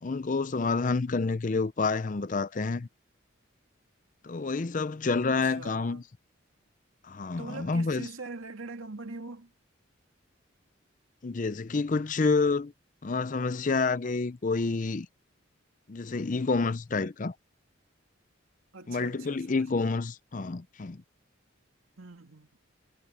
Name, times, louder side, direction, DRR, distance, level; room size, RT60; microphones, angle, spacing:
voice 1, 0.0-2.9 4.2-6.0 7.0-8.1 11.2-12.7 13.0-15.1 15.9-17.3 18.9-21.0, left 4 dB, 40° left, 0.5 m, -28 dB
voice 2, 5.4-6.0 7.4-9.5 18.7-19.9 22.0-22.6, right 3 dB, 85° right, 2.3 m, -43 dB
head